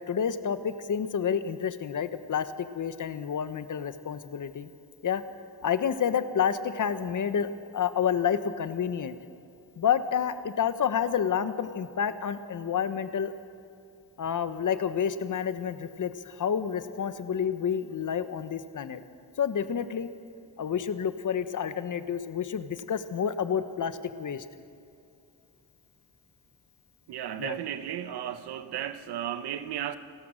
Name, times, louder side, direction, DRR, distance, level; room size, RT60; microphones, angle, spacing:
voice 1, 0.1-4.7 5.0-5.2 5.6-9.2 9.8-13.3 14.2-19.0 19.4-20.1 20.6-24.4 27.4-27.6, left 7 dB, 50° left, 1.1 m, -29 dB
voice 2, 27.1-30.0, right 10 dB, 85° right, 1.1 m, -34 dB
29.5 x 14.0 x 6.4 m
cardioid pair, 95°, 38 cm